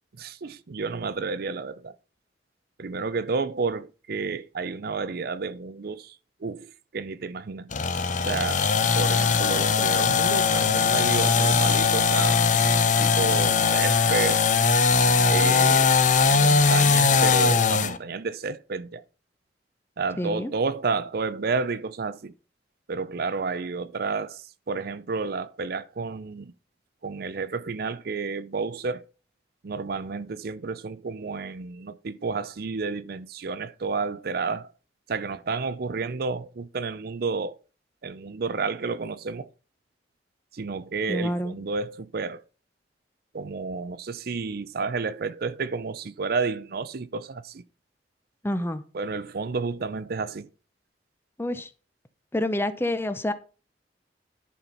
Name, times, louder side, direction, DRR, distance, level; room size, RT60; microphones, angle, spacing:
voice 1, 0.2-1.9 2.8-6.2 6.4-6.7 6.9-7.7 8.3-8.7 9.0-12.4 13.0-14.4 15.3-15.9 16.3-19.0 20.0-22.3 22.9-26.5 27.0-29.1 29.6-34.7 35.1-37.6 38.0-39.5 40.5-42.4 43.3-47.6 48.9-50.5, right 4 dB, 60° right, 0.5 m, -31 dB
sound 1, 7.7-18.0, left 5 dB, 45° left, 0.8 m, -20 dB
voice 2, 20.2-20.5 41.1-41.5 48.4-48.8 51.4-51.7 52.3-53.3, left 1 dB, 15° left, 0.7 m, -27 dB
11.0 x 4.3 x 5.7 m
head